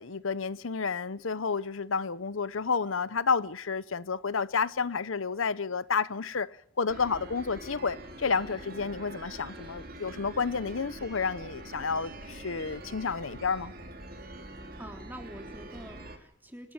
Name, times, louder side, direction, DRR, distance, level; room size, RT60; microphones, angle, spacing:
voice 1, 0.0-6.5 6.8-13.7, left 5 dB, 85° left, 0.9 m, -30 dB
sound 1, 6.9-16.2, right 1 dB, 45° right, 3.5 m, -44 dB
voice 2, 14.8-16.7, right 1 dB, 10° right, 3.4 m, -45 dB
27.0 x 13.0 x 9.4 m
head